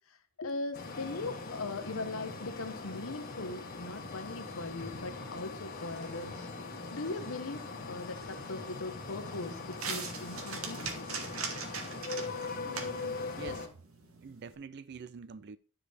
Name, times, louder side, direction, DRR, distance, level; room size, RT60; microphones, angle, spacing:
voice 1, 0.4-6.5 6.9-10.8 14.0-14.1, left 3 dB, 75° left, 0.9 m, -40 dB
sound 1, 0.7-13.7, left 3 dB, 45° left, 1.5 m, -41 dB
sound 2, 5.2-11.7, left 1 dB, 5° left, 1.9 m, -56 dB
sound 3, 7.7-14.5, right 5 dB, 85° right, 1.4 m, -43 dB
voice 2, 12.6-13.7 14.2-15.6, right 5 dB, 50° right, 0.4 m, -46 dB
9.9 x 4.9 x 4.3 m
head